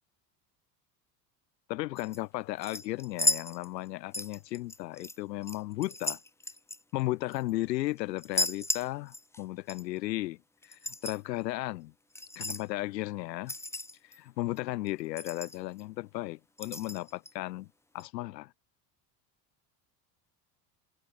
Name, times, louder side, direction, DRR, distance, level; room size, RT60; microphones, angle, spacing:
voice 1, 1.7-6.2 6.9-10.4 10.6-11.9 12.3-13.5 14.0-17.7 17.9-18.5, left 18 dB, 80° left, 1.4 m, -35 dB
sound 1, 2.0-2.2 2.6-3.9 4.1-5.2 5.4-7.5 8.2-9.4 9.7-9.8 10.6-11.2 12.1-12.6 13.5-14.2 14.6-14.7 14.9-15.0 15.2-15.8 16.6-17.3 18.0-18.1, left 2 dB, 5° left, 0.8 m, -34 dB
hypercardioid pair, 75°, 49 cm